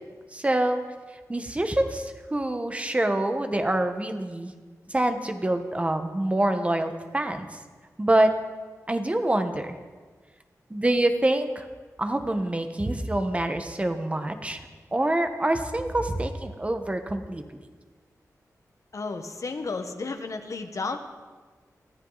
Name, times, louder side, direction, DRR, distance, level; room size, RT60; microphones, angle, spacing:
voice 1, 0.3-0.8 1.3-4.5 4.9-7.6 8.0-8.4 8.9-9.7 10.7-11.6 12.0-14.6 14.9-17.4, right 1 dB, 20° right, 7 dB, 1.4 m, -26 dB
voice 2, 18.9-21.0, left 3 dB, 60° left, 7 dB, 1.4 m, -32 dB
24.5 x 14.0 x 4.1 m, 1.4 s
wide cardioid pair, 105°, 6 cm